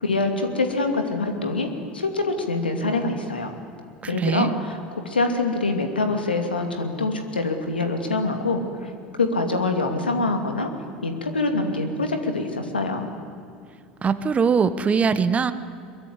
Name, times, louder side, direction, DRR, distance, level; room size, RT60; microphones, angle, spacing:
voice 1, 0.0-3.5 4.1-8.9 9.2-10.7 11.0-13.1, left 3 dB, 85° left, 6 dB, 2.6 m, -25 dB
voice 2, 4.0-4.5 14.0-15.5, right 6 dB, 25° right, 13 dB, 1.3 m, -21 dB
22.5 x 22.5 x 9.8 m, 2.3 s
figure-of-eight pair, 75°, 5 cm